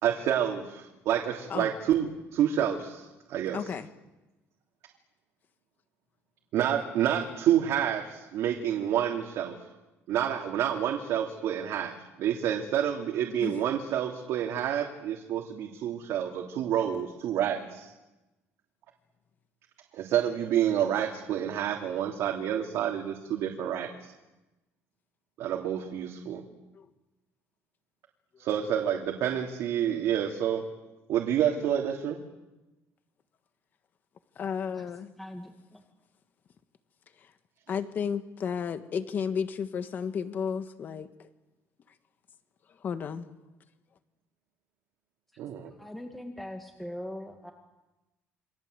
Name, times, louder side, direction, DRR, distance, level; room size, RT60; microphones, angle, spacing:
voice 1, 0.0-3.7 6.5-9.6 10.1-17.9 19.9-24.1 25.4-26.4 28.4-30.6 31.1-32.2 45.4-45.7, right 10 dB, 70° right, 1 dB, 3.1 m, -28 dB
voice 2, 3.5-3.9 13.4-13.5 34.4-35.1 37.7-41.1 42.8-43.3, left 7 dB, 40° left, 9 dB, 1.6 m, -32 dB
voice 3, 35.2-35.8 45.8-47.5, left 1 dB, 5° left, 2 dB, 2.1 m, -41 dB
29.0 x 24.0 x 8.1 m, 1.0 s
cardioid pair, 160°, 5 cm